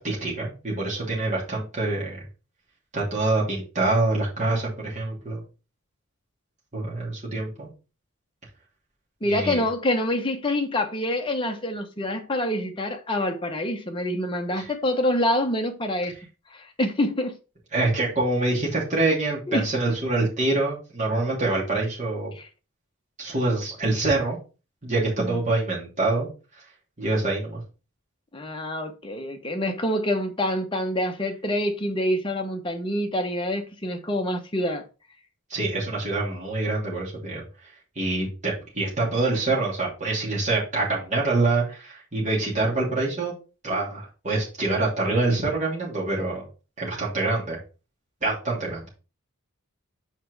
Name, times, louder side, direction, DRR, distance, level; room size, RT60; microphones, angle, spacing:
voice 1, 0.0-2.2 2.9-5.4 6.7-7.7 9.2-9.6 14.6-14.7 17.7-22.3 23.2-24.4 24.8-26.3 27.0-27.6 35.5-43.3 43.6-46.4 46.8-47.6 48.2-48.9, right 2 dB, 30° right, 2.8 m, -25 dB
voice 2, 9.2-16.1 16.5-17.4 19.5-19.7 22.4-22.5 25.2-25.4 28.3-34.8, left 1 dB, 20° left, 0.9 m, -26 dB
5.9 x 4.5 x 4.6 m
head